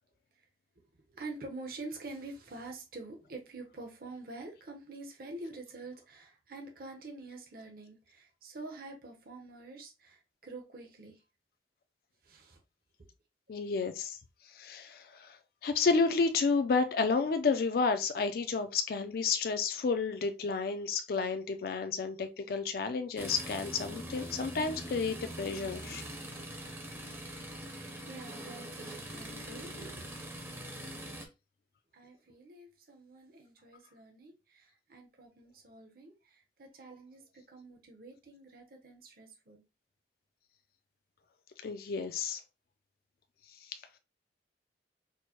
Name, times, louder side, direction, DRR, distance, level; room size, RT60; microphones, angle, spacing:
voice 1, 1.1-11.2 12.2-12.6 25.9-26.0 27.5-30.1 30.9-31.0 31.9-39.6, right 2 dB, 55° right, 0.8 m, -47 dB
voice 2, 13.5-14.2 14.5-15.4 15.6-26.0 41.6-42.4 43.7-43.8, left 4 dB, 55° left, 0.4 m, -31 dB
sound 1, 23.2-31.3, right 1 dB, 15° right, 0.6 m, -43 dB
4.5 x 2.1 x 2.9 m
head